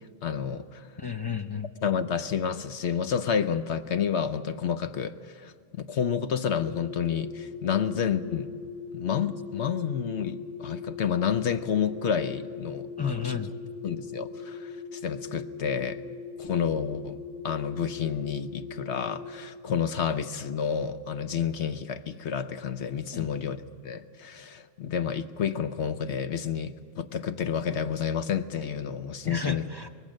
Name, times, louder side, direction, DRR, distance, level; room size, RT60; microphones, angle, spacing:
voice 1, 0.2-0.9 1.8-8.5 8.9-13.4 13.8-16.0 16.4-17.2 17.4-29.6, left 7 dB, 60° left, 10 dB, 0.9 m, -30 dB
voice 2, 1.0-1.7 13.0-13.5 23.1-23.3 29.2-29.9, left 5 dB, 30° left, 6 dB, 0.4 m, -32 dB
sound 1, 6.5-19.3, left 5 dB, 85° left, 5.2 m, -40 dB
23.5 x 19.5 x 6.4 m, 2.2 s
omnidirectional pair, 1.4 m